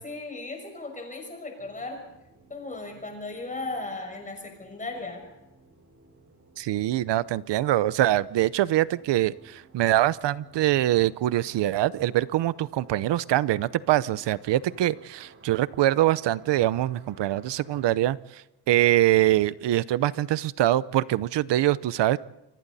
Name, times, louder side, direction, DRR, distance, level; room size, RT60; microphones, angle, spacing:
voice 1, 0.0-2.0 2.5-5.2, left 2 dB, 20° left, 3 dB, 6.2 m, -36 dB
sound 1, 1.6-17.9, right 3 dB, 30° right, 4.5 m, -56 dB
voice 2, 6.6-18.4 18.7-22.2, right 14 dB, 80° right, 17 dB, 0.8 m, -24 dB
29.0 x 25.0 x 4.2 m, 0.95 s
wide cardioid pair, 180°, 42 cm